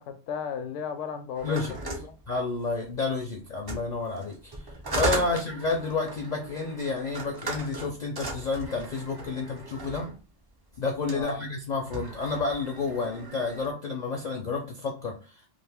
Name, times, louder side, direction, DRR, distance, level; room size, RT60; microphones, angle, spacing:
voice 1, 0.0-1.6 1.8-2.1 5.1-5.4 11.1-11.4, left 7 dB, 75° left, 8 dB, 0.9 m, -35 dB
sound 1, 1.3-2.9 3.6-10.2 10.9-11.4 11.7-13.7, right 2 dB, 35° right, 0.3 m, -37 dB
voice 2, 1.4-1.7 2.3-10.1 10.8-15.4, left 3 dB, 55° left, 0 dB, 0.5 m, -30 dB
2.5 x 2.4 x 3.4 m, 0.34 s
omnidirectional pair, 1.3 m